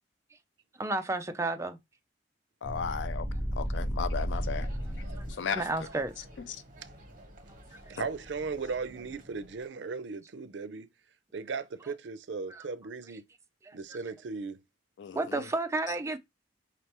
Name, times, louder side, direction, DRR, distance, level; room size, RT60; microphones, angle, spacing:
voice 1, 0.8-1.8 5.5-6.3 7.7-8.0 12.5-12.6 13.6-13.8 15.2-16.2, right 2 dB, 15° right, 0.4 m, -32 dB
voice 2, 2.6-3.3 3.6-4.7 5.3-5.6 15.0-15.5, left 6 dB, 80° left, 0.4 m, -35 dB
sound 1, 2.6-5.6, equal, 5° left, 1.0 m, -33 dB
sound 2, 4.3-9.7, right 1 dB, 50° right, 1.2 m, -51 dB
voice 3, 7.9-10.9 11.3-13.2 13.7-14.6, right 4 dB, 80° right, 0.5 m, -37 dB
5.1 x 3.3 x 2.9 m
head